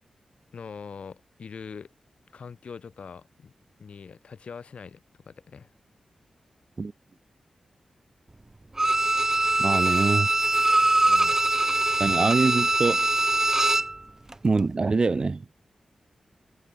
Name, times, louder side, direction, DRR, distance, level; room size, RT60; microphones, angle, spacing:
voice 1, 0.5-1.9 2.3-3.5 3.8-5.7 9.7-9.8 10.8-11.4 14.2-14.3, left 6 dB, 70° left, 4.0 m, -43 dB
Bowed string instrument, 8.8-14.0 14.3-14.4, right 2 dB, 25° right, 0.8 m, -22 dB
voice 2, 9.6-10.3 12.0-13.1 14.4-15.6, right 3 dB, 45° right, 1.3 m, -24 dB
cardioid pair, 70°, 2 cm